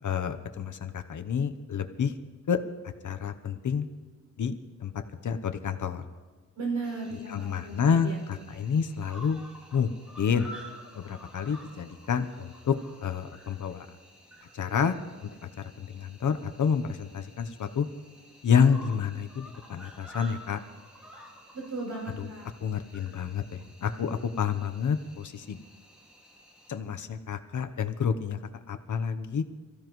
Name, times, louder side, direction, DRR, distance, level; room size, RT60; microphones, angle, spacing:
voice 1, 0.0-2.1 2.5-3.9 4.4-4.5 4.8-4.9 5.2-6.0 7.3-9.4 9.7-10.5 10.9-12.8 13.0-13.9 14.5-15.0 15.6-17.9 18.4-20.6 22.2-22.3 22.6-25.6 26.7-28.4 28.7-29.4, left 7 dB, 80° left, 8 dB, 0.9 m, -29 dB
voice 2, 6.6-8.2 8.5-8.7 21.5-22.5, right 3 dB, 85° right, -1 dB, 6.1 m, -36 dB
Cricket, 6.8-26.8, equal, 5° right, 2.0 m, -51 dB
28.5 x 15.0 x 3.1 m, 1.3 s
wide cardioid pair, 155°, 30 cm